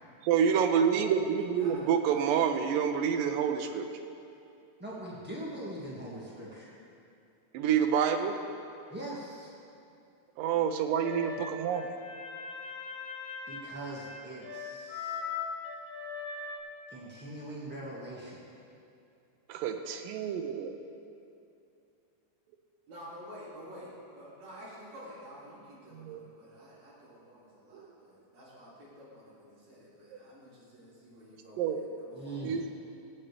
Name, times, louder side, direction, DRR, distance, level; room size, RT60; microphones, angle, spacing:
voice 1, 0.2-3.8 7.5-8.4 10.4-12.0 19.5-20.8 25.9-26.2 27.7-27.9 31.6-31.9 32.4-32.7, right 7 dB, 90° right, 6 dB, 2.4 m, -28 dB
voice 2, 1.6-2.3 22.9-32.6, equal, 55° right, -9 dB, 4.4 m, -50 dB
voice 3, 4.8-6.7 8.9-9.5 13.5-15.2 16.9-18.5 32.1-32.5, right 1 dB, 15° right, -7 dB, 0.3 m, -41 dB
sound 1, 11.0-16.6, left 6 dB, 65° left, 2.1 m, -40 dB
20.0 x 8.4 x 3.4 m, 2.6 s
omnidirectional pair, 3.8 m